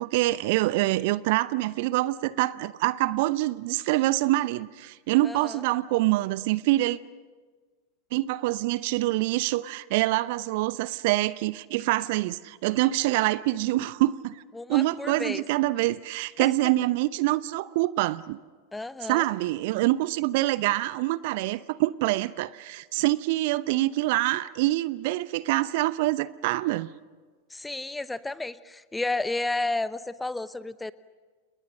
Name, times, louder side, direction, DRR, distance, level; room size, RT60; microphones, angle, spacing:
voice 1, 0.0-7.0 8.1-14.4 14.7-18.4 19.0-26.9, right 17 dB, 50° right, 0.8 m, -25 dB
voice 2, 5.2-5.6 14.5-15.4 16.4-16.5 18.7-19.3 27.5-30.9, left 2 dB, 5° left, 0.9 m, -32 dB
30.0 x 29.5 x 6.5 m
figure-of-eight pair, 90°, 0 cm